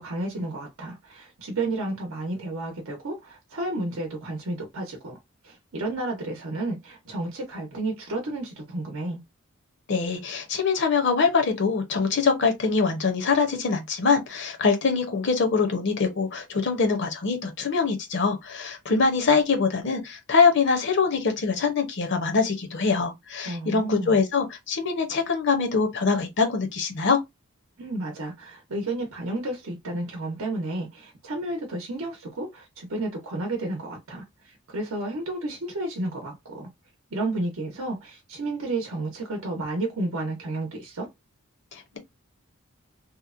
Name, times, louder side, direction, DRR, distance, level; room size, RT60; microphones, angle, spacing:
voice 1, 0.0-5.2 5.4-9.2 23.4-24.2 27.8-36.7 37.1-41.1, right 2 dB, 75° right, 0.7 m, -32 dB
voice 2, 9.9-27.2 41.7-42.0, left 5 dB, 55° left, 0.7 m, -23 dB
2.8 x 2.1 x 2.4 m
head